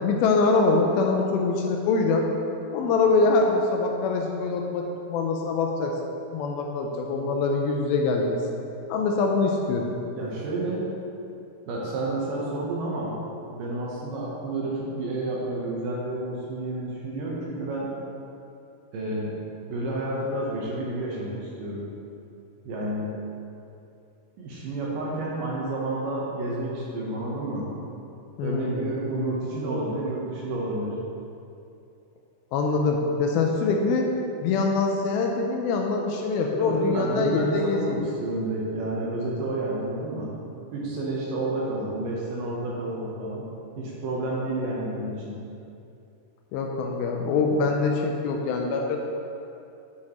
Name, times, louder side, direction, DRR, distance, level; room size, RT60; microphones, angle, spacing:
voice 1, 0.0-2.3 2.7-6.0 6.3-8.4 8.9-9.9 28.4-29.0 32.5-34.1 34.4-38.1 46.5-49.0, left 3 dB, 80° left, 1 dB, 2.3 m, -24 dB
voice 2, 10.1-10.9 11.7-13.2 13.5-17.9 18.9-19.4 19.7-21.9 22.6-23.2 24.4-27.7 28.4-31.0 36.6-40.3 40.7-43.5 43.8-45.4, right 2 dB, 70° right, -4 dB, 2.3 m, -30 dB
9.6 x 6.3 x 3.0 m, 2.6 s
omnidirectional pair, 4.6 m